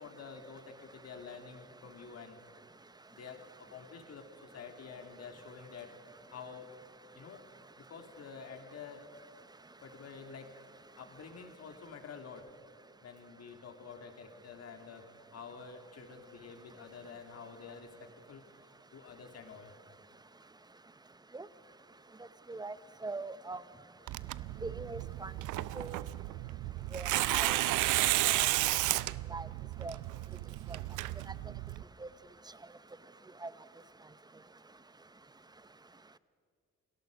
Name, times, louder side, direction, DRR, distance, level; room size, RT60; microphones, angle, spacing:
voice 1, 0.0-2.4 3.1-3.4 3.7-5.9 6.3-6.7 7.1-7.4 7.9-9.0 9.8-10.5 11.0-12.4 13.0-15.0 15.3-18.4 18.9-19.7, left 5 dB, 55° left, 5 dB, 2.7 m, -48 dB
voice 2, 23.0-23.6 24.6-25.3 25.7-26.0 26.9-27.6 28.3-28.5 29.3-29.5 29.8-29.9 30.7-30.8 31.2-31.3 32.0-32.1 33.4-33.5, right 3 dB, 15° right, 15 dB, 0.8 m, -41 dB
Tearing, 24.1-31.8, right 17 dB, 90° right, 0.6 m, -33 dB
28.5 x 18.5 x 5.3 m, 2.2 s
cardioid pair, 90°, 30 cm